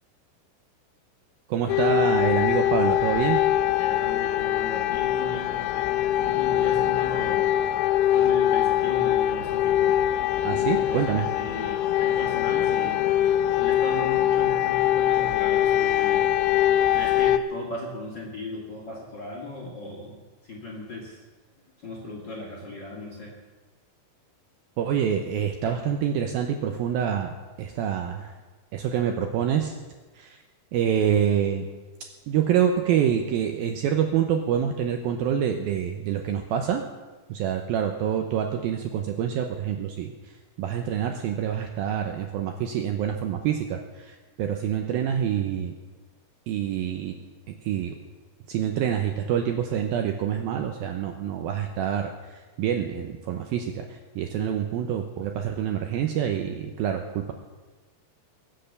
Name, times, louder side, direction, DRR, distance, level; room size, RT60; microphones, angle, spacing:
voice 1, 1.5-3.4 10.4-11.3 24.8-28.3 28.7-29.7 30.2-30.4 30.7-31.7 32.3-36.8 37.3-45.7 46.5-47.2 47.6-48.0 48.5-57.3, right 9 dB, 80° right, 5 dB, 2.2 m, -26 dB
sound 1, 1.7-17.4, left 12 dB, 90° left, 3.0 m, -23 dB
voice 2, 3.8-5.9 6.2-7.5 8.1-10.0 10.5-13.0 13.6-16.3 16.9-20.2 20.4-21.2 21.8-23.4 25.6-25.7 54.4-54.5, left 2 dB, 35° left, -2 dB, 2.0 m, -37 dB
22.5 x 7.8 x 6.7 m, 1.3 s
omnidirectional pair, 5.0 m